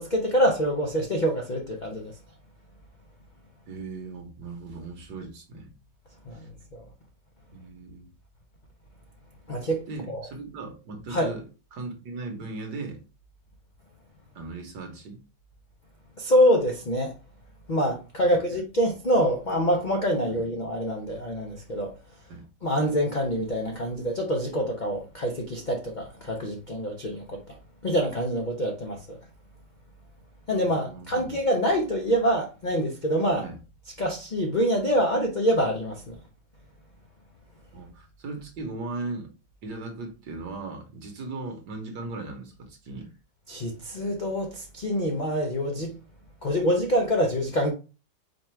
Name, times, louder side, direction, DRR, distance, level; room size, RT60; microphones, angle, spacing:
voice 1, 0.0-2.2 6.2-6.8 9.5-9.8 10.1-10.3 11.1-11.3 16.2-17.1 17.7-21.9 22.6-29.2 30.5-33.5 34.0-36.2 43.5-45.9 46.4-47.7, equal, 75° left, 0.4 m, -26 dB
voice 2, 3.7-5.7 6.3-6.5 7.5-8.1 9.9-11.4 11.7-13.0 14.3-15.2 18.2-18.4 20.3-20.4 22.3-22.4 30.6-31.3 33.4-33.6 37.7-39.3 39.6-43.1, right 3 dB, 70° right, 1.5 m, -38 dB
5.0 x 2.3 x 4.4 m
omnidirectional pair, 1.9 m